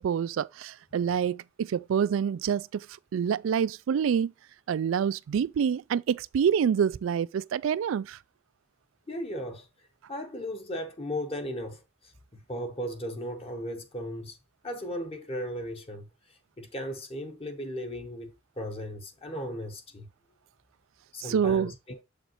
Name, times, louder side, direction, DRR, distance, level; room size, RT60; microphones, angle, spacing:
voice 1, 0.0-2.9 3.1-4.3 4.7-8.2 21.2-21.7, right 7 dB, 85° right, 0.3 m, -27 dB
voice 2, 9.1-9.7 10.1-12.1 12.5-14.4 14.6-20.1 21.1-22.0, equal, 30° left, 1.0 m, -36 dB
7.3 x 5.1 x 3.0 m
head